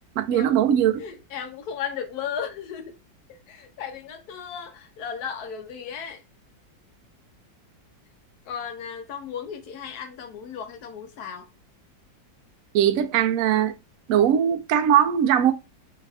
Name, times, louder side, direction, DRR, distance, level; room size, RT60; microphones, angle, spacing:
voice 1, 0.2-1.0 12.7-13.8 14.1-15.5, right 9 dB, 80° right, 0.8 m, -20 dB
voice 2, 1.0-3.0 3.3-6.2 8.5-11.5, left 7 dB, 70° left, 1.0 m, -35 dB
3.5 x 2.5 x 3.2 m
omnidirectional pair, 2.0 m